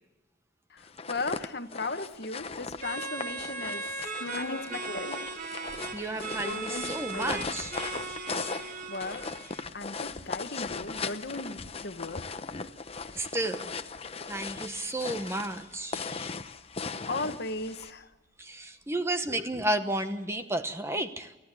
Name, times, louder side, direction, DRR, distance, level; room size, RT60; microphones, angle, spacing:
voice 1, 0.7-3.9 4.3-5.1 8.9-9.3 9.7-12.3 17.1-18.1, left 3 dB, 55° left, 9 dB, 1.3 m, -36 dB
sound 1, 0.8-17.9, left 4 dB, 30° left, 0.8 m, -38 dB
sound 2, 2.8-9.6, right 4 dB, 45° right, 1.5 m, -38 dB
sound 3, 4.2-5.4 5.7-8.3 8.7-8.8 8.9-13.4 13.8-17.8, left 2 dB, 80° left, 1.7 m, -43 dB
voice 2, 5.9-7.8 8.7-8.9 13.1-13.7 14.3-16.3 18.4-21.4, right 1 dB, 15° right, 8 dB, 1.0 m, -32 dB
29.5 x 15.0 x 8.3 m, 1.2 s
head